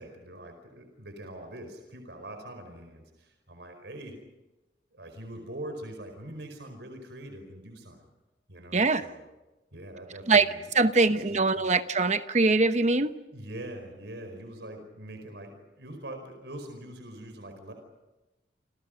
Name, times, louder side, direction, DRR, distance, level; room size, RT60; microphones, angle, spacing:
voice 1, 0.0-4.2 4.9-8.1 8.5-9.2 9.7-10.9 11.3-11.7 13.3-17.7, right 1 dB, 80° right, 5 dB, 4.8 m, -43 dB
voice 2, 8.7-9.1 10.3-10.5 10.7-13.1, right 3 dB, 40° right, 10 dB, 1.1 m, -22 dB
29.5 x 28.0 x 5.3 m, 1.1 s
head